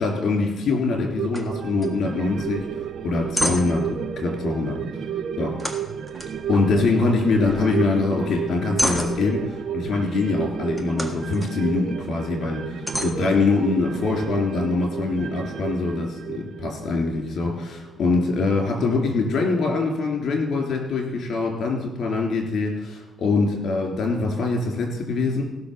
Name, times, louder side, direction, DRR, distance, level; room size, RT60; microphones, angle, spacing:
voice 1, 0.0-4.8 5.4-5.6 6.5-12.6 13.0-25.4, left 3 dB, 60° left, 2 dB, 3.7 m, -24 dB
sound 1, 1.1-17.9 18.3-18.4, right 9 dB, 60° right, 0.7 m, -32 dB
sound 2, 1.3-1.5 1.8-1.9 2.3-2.6 3.0-3.9 5.6-7.0 7.3-7.9 8.3-9.6 10.7-11.5 12.1-12.2 12.9-13.9, equal, ahead, 1.6 m, -30 dB
16.5 x 6.2 x 7.0 m, 1.0 s
cardioid pair, 100°, 0 cm